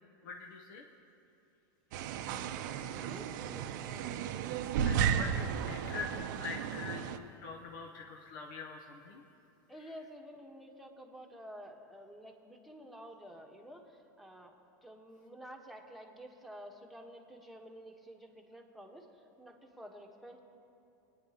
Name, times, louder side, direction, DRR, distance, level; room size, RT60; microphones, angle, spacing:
voice 1, 0.2-0.9 4.7-9.2, left 4 dB, 80° left, 1 dB, 0.9 m, -44 dB
sound 1, 1.9-7.2, right 8 dB, 70° right, 0.6 m, -34 dB
voice 2, 2.9-4.2 9.7-14.5 14.8-20.4, equal, ahead, 1 dB, 1.1 m, -51 dB
24.5 x 9.5 x 2.9 m, 2.8 s
supercardioid pair, 125°, 10 cm